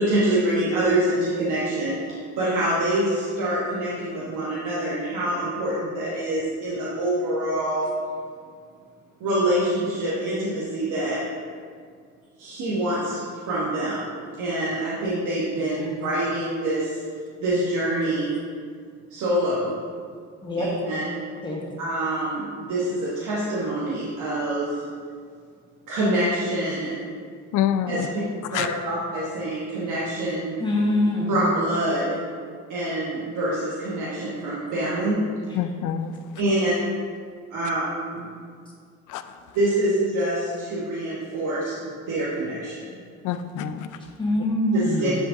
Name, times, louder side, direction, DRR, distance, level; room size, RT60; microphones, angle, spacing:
voice 1, 0.0-2.0 2.4-7.9 9.2-11.2 12.4-14.1 14.4-17.0 17.4-18.3 19.1-19.7 20.6-21.0 21.8-24.7 25.9-26.9 27.9-28.1 28.5-30.5 31.3-32.2 32.7-35.2 36.4-36.7 37.5-37.9 38.1-38.3 39.5-42.8 44.8-45.1, right 1 dB, 85° right, -7 dB, 1.3 m, -25 dB
voice 2, 15.6-16.0 20.4-20.7 21.4-21.6 30.6-31.3 44.2-45.2, left 1 dB, 15° left, -4 dB, 1.7 m, -24 dB
voice 3, 27.5-28.1 28.5-28.7 35.5-36.1 39.1-39.2 43.2-43.9, left 10 dB, 85° left, 11 dB, 0.5 m, -26 dB
10.0 x 3.6 x 3.8 m, 2.1 s
cardioid pair, 90°, 30 cm